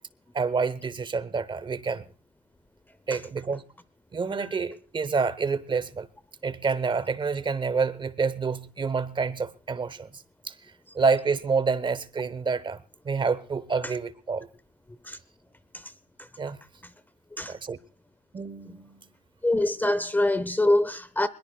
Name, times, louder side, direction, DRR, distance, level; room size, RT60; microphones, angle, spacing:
voice 1, 0.3-2.0 3.1-3.6 4.1-6.1 6.4-10.5 10.9-12.8 13.0-14.5 16.4-16.6 17.5-17.8 18.3-19.0, right 5 dB, 30° right, 0.9 m, -28 dB
voice 2, 19.4-21.3, left 1 dB, 10° left, 0.7 m, -24 dB
22.5 x 21.0 x 2.3 m
cardioid pair, 110°, 17 cm